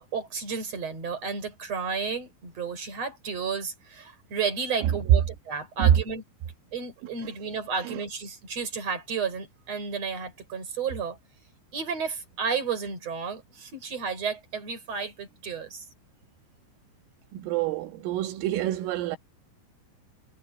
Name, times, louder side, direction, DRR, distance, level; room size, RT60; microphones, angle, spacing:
voice 1, 0.0-6.2 6.7-11.2 11.7-15.9, right 5 dB, 30° right, 6.3 m, -32 dB
voice 2, 17.3-19.2, right 11 dB, 90° right, 4.1 m, -25 dB
omnidirectional pair, 5.7 m